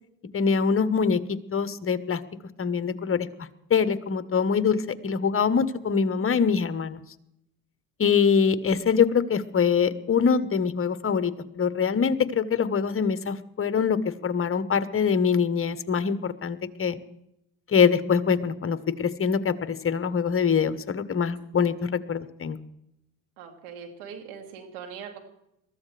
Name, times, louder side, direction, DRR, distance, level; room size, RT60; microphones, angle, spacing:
voice 1, 0.3-2.2 2.6-3.3 3.7-7.0 8.0-17.0 17.7-22.6, left 6 dB, 30° left, 13 dB, 1.1 m, -24 dB
voice 2, 23.4-25.2, right 7 dB, 80° right, 3 dB, 2.7 m, -41 dB
22.0 x 14.0 x 3.4 m, 0.81 s
hypercardioid pair, 65°, 44 cm